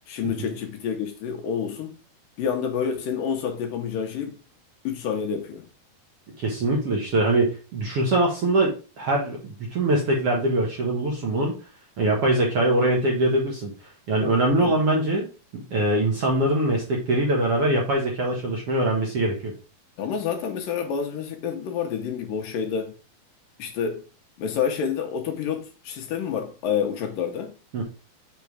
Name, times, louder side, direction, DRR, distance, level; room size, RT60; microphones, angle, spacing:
voice 1, 0.1-1.9 2.4-4.4 4.8-5.7 14.6-14.8 20.0-22.9 23.6-24.0 24.4-27.5, left 7 dB, 70° left, 2.5 m, -28 dB
voice 2, 6.4-11.5 12.0-13.7 14.1-15.3 15.7-19.5 27.7-27.8, right 1 dB, 55° right, 1.9 m, -23 dB
6.9 x 3.8 x 4.7 m
omnidirectional pair, 4.3 m